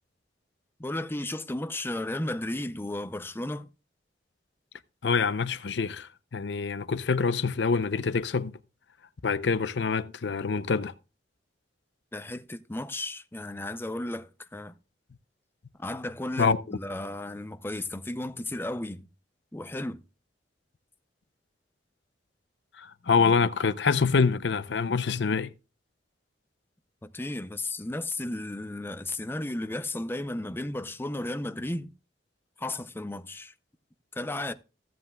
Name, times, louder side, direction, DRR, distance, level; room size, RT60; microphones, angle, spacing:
voice 1, 0.8-3.7 12.1-14.7 15.8-19.1 19.5-20.0 27.0-31.9 32.6-33.5 34.1-34.5, left 1 dB, 15° left, 0.5 m, -34 dB
voice 2, 5.0-8.5 9.2-10.9 16.4-16.6 22.8-25.5, left 5 dB, 75° left, 0.6 m, -26 dB
15.0 x 7.8 x 2.3 m
head